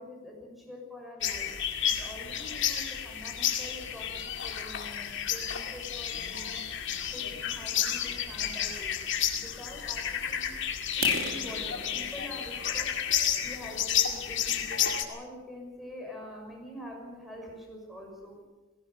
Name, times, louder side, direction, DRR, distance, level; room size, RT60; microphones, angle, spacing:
voice 1, 0.0-1.5 2.0-6.7 7.1-10.5 11.0-12.9 13.4-18.5, equal, ahead, 0 dB, 6.2 m, -45 dB
sound 1, 1.2-15.0, left 9 dB, 60° left, 2.3 m, -31 dB
sound 2, 10.9-14.7 15.2-15.4 15.8-15.9 16.4-16.5 16.8-16.9 17.4-17.5 17.7-18.2, right 4 dB, 65° right, 3.0 m, -40 dB
19.0 x 17.5 x 8.2 m, 1.1 s
head